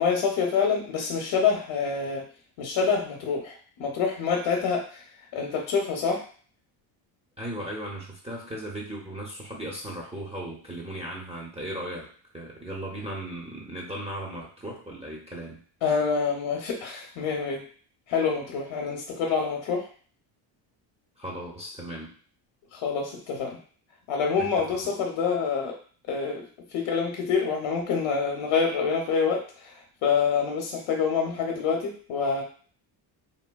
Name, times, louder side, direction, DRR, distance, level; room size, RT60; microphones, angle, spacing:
voice 1, 0.0-2.3 2.6-5.0 5.3-6.2 15.8-17.6 18.1-19.9 22.7-23.6 24.1-25.8 26.1-26.5 26.7-29.7 30.0-32.4, left 5 dB, 65° left, 1 dB, 0.8 m, -26 dB
voice 2, 7.4-15.6 21.2-22.1 24.4-24.7, right 1 dB, 15° right, -3 dB, 0.7 m, -37 dB
3.6 x 2.2 x 2.2 m, 0.43 s
cardioid pair, 95°, 49 cm